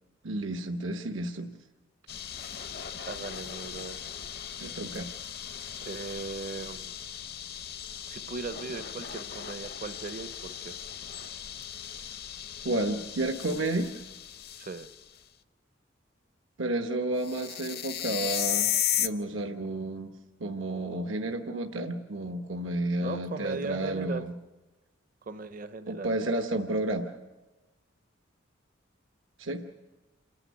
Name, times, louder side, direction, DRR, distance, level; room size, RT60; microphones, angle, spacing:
voice 1, 0.2-1.5 4.6-5.1 12.6-13.9 16.6-20.1 20.4-24.3 25.9-27.1 29.4-29.6, right 1 dB, 90° right, 5 dB, 1.0 m, -31 dB
Tangkoko Nature Reserve - Sulawesi Indonesia, 2.1-15.1 17.2-19.1, left 10 dB, 55° left, 0.7 m, -36 dB
voice 2, 3.1-4.0 5.8-7.0 8.1-10.8 14.6-14.9 23.0-24.2 25.2-26.1, right 4 dB, 45° right, 11 dB, 0.6 m, -38 dB
28.0 x 9.9 x 9.4 m, 1.2 s
head